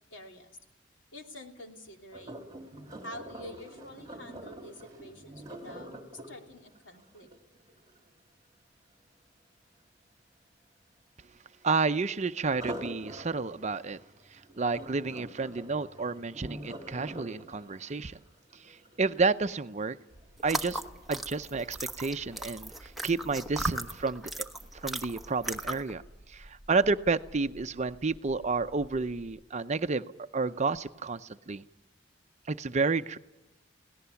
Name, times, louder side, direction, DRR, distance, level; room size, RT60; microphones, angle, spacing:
voice 1, 0.1-0.5 1.1-2.4 3.0-7.3, left 1 dB, 80° left, 3 dB, 2.9 m, -47 dB
Sink (filling or washing), 2.1-8.1 12.4-19.5 20.0-20.3 20.8-20.9, right 1 dB, 20° right, 2.8 m, -45 dB
voice 2, 11.6-14.0 14.3-18.2 18.7-20.0 20.4-20.8 21.1-24.3 24.8-26.0 26.3-30.0 30.3-31.6 32.5-33.2, right 4 dB, 40° right, 11 dB, 0.6 m, -30 dB
sound 1, 20.1-29.4, right 1 dB, 45° left, 2.6 m, -53 dB
sound 2, 20.4-25.9, right 1 dB, ahead, 1.1 m, -37 dB
22.5 x 17.5 x 7.1 m, 1.0 s
head